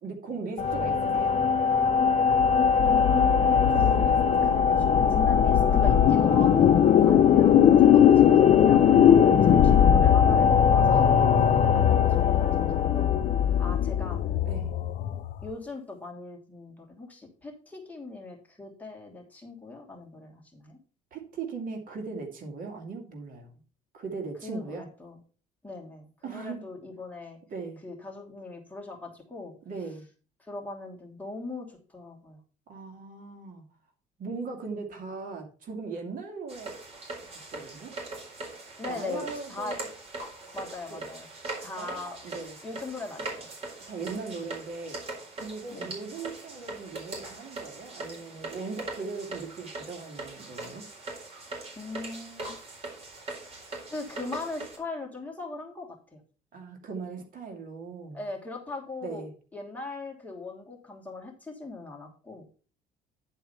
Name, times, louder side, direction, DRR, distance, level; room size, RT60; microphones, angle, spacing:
voice 1, 0.0-1.4 3.7-4.5 6.9-7.2 11.3-11.6 14.5-14.7 21.1-23.5 23.9-24.9 26.2-26.6 27.5-27.8 29.6-30.0 32.7-33.6 34.2-36.7 37.3-37.9 38.9-39.9 40.9-41.0 41.8-42.6 43.9-45.0 45.4-50.9 56.5-58.2 59.0-59.3, right 4 dB, 55° right, 4 dB, 2.3 m, -39 dB
sound 1, 0.6-14.1, left 5 dB, 40° left, 2.6 m, -24 dB
sound 2, 2.3-15.5, left 10 dB, 55° left, 0.7 m, -21 dB
voice 2, 2.8-3.6 4.4-9.0 9.4-11.1 11.5-13.2 13.6-14.2 15.4-20.8 24.4-25.2 25.6-27.4 27.8-29.5 30.4-32.4 38.8-39.8 40.5-41.3 41.6-42.2 42.6-43.5 45.7-45.9 51.8-52.6 53.9-56.2 58.1-59.2 59.5-62.4, left 3 dB, 10° left, -1 dB, 2.8 m, -40 dB
sound 3, 36.5-54.8, right 2 dB, 35° right, 4.2 m, -41 dB
10.5 x 4.6 x 5.6 m, 0.38 s
cardioid pair, 110°, 17 cm